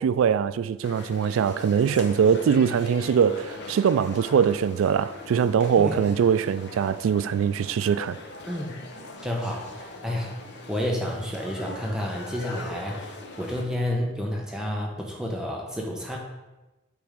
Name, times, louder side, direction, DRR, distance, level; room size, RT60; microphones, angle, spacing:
voice 1, 0.0-8.2, right 7 dB, 80° right, 0.3 m, -22 dB
sound 1, 0.8-13.6, left 2 dB, 55° left, 0.8 m, -41 dB
voice 2, 9.2-10.4 10.7-16.2, left 1 dB, 5° right, 0.8 m, -30 dB
8.4 x 3.5 x 5.0 m
head